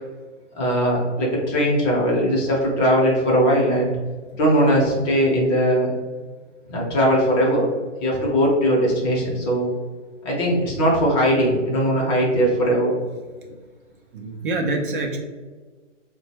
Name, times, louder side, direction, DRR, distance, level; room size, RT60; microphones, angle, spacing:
voice 1, 0.6-3.9 4.4-5.9 6.7-7.7 8.0-9.7 10.2-12.9, equal, 25° left, -2 dB, 0.8 m, -19 dB
voice 2, 14.1-15.2, right 2 dB, 45° right, 2 dB, 0.5 m, -25 dB
4.0 x 2.2 x 2.8 m, 1.4 s
figure-of-eight pair, 130°, 37 cm